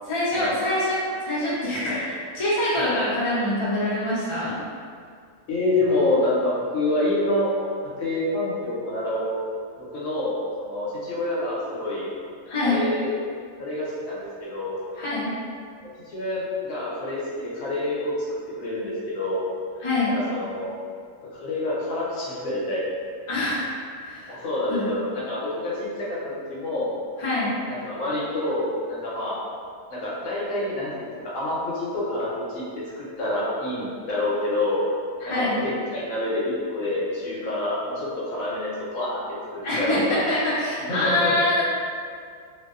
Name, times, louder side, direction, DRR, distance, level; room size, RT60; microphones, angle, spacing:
voice 1, 0.1-4.5 12.5-12.8 15.0-15.3 19.8-20.1 23.3-24.3 24.7-24.8 27.2-27.5 35.2-35.6 39.6-41.6, left 1 dB, 40° left, -10 dB, 0.4 m, -25 dB
voice 2, 5.5-7.5 8.0-9.3 9.8-12.1 12.6-13.1 13.6-14.8 15.8-18.1 18.5-19.4 20.1-20.7 21.4-22.8 24.3-26.2 26.5-26.9 27.7-29.4 29.9-34.8 35.2-36.4 36.7-39.2 39.5-40.2 40.9-41.3, left 1 dB, 70° left, -7 dB, 1.0 m, -27 dB
2.5 x 2.1 x 2.3 m, 2.2 s
omnidirectional pair, 1.5 m